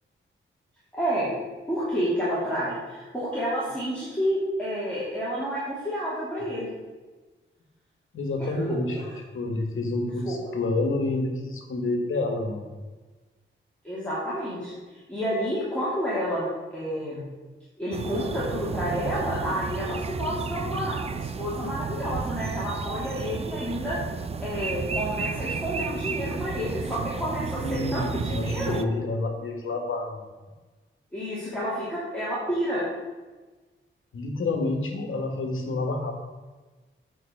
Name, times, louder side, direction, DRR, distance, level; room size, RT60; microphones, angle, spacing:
voice 1, 0.9-1.4 1.7-6.7 8.4-8.8 10.3-10.4 13.8-17.3 17.8-24.0 24.4-28.8 31.1-32.8, equal, 5° left, -9 dB, 2.6 m, -30 dB
voice 2, 8.1-9.0 9.3-12.7 27.6-30.3 34.1-36.1, left 2 dB, 70° left, 4 dB, 1.6 m, -28 dB
sound 1, 17.9-28.8, right 5 dB, 30° right, 0.4 m, -32 dB
8.7 x 4.7 x 6.6 m, 1.3 s
wide cardioid pair, 125°, 21 cm